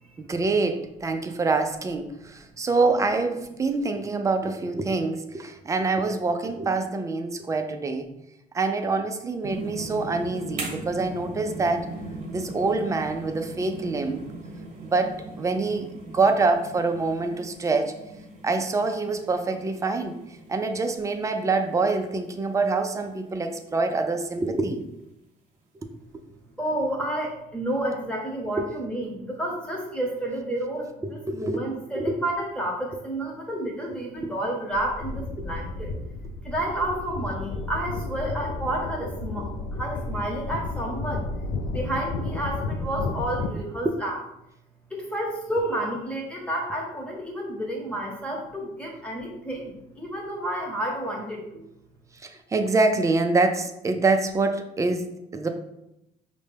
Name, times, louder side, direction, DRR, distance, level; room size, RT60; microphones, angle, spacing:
voice 1, 0.2-8.1 8.5-11.9 12.3-14.2 14.8-18.0 18.4-20.2 20.5-24.8 28.6-28.7 31.0-31.6 31.9-32.2 35.4-35.5 52.2-55.5, right 3 dB, 20° right, 6 dB, 0.4 m, -25 dB
sound 1, 9.4-24.3 24.8-24.9, right 2 dB, 45° right, 1.1 m, -40 dB
voice 2, 26.6-35.9 36.4-41.2 41.7-44.2 44.9-51.6, right 1 dB, 5° left, -2 dB, 1.1 m, -30 dB
sound 2, 34.7-43.5, left 3 dB, 70° left, 0.4 m, -32 dB
5.0 x 2.2 x 3.3 m, 0.84 s
cardioid pair, 110°, 17 cm